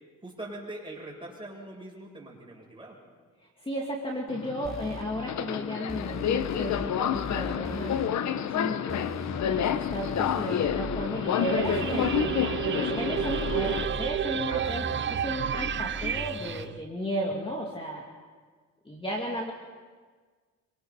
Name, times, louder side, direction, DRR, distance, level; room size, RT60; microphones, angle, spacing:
voice 1, 0.2-3.0 8.4-8.7 14.5-14.8 15.1-15.2, right 1 dB, 15° right, -2 dB, 7.8 m, -42 dB
voice 2, 3.4-18.0 18.8-19.5, equal, 20° left, -1 dB, 2.8 m, -34 dB
Subway metro underground, 4.3-13.9, left 9 dB, 65° left, 1.0 m, -29 dB
sound 1, 4.6-5.0 5.9-6.9 7.1-8.1 8.9-11.1 11.6-12.7 13.1-14.1 14.6-16.7, equal, ahead, 3.0 m, -39 dB
sound 2, 11.1-16.6, right 9 dB, 40° right, 0.6 m, -31 dB
27.0 x 24.0 x 4.2 m, 1.5 s
cardioid pair, 90°, 30 cm